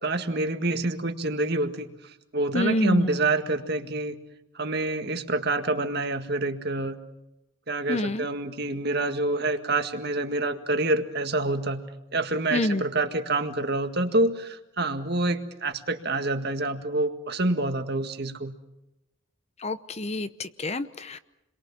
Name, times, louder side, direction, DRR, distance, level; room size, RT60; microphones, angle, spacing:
voice 1, 0.0-4.1 4.6-7.0 7.7-11.8 12.1-18.5, right 2 dB, 50° right, 7 dB, 1.9 m, -27 dB
voice 2, 2.5-3.1 7.9-8.3 12.5-12.8 19.6-21.2, left 2 dB, 30° left, 12 dB, 0.8 m, -27 dB
30.0 x 23.0 x 7.3 m, 0.93 s
head